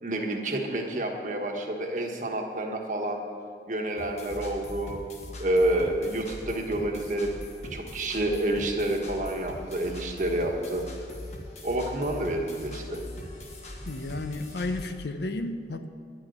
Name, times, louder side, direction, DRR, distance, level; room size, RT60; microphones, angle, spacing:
voice 1, 0.0-3.2 3.7-5.0 5.4-7.3 7.6-10.9 11.6-13.0, right 1 dB, 45° right, 2 dB, 1.4 m, -29 dB
sound 1, 4.0-14.9, left 1 dB, 40° left, 1.4 m, -41 dB
voice 2, 13.9-15.9, left 2 dB, 70° left, 9 dB, 0.7 m, -32 dB
10.5 x 6.4 x 9.1 m, 2.2 s
head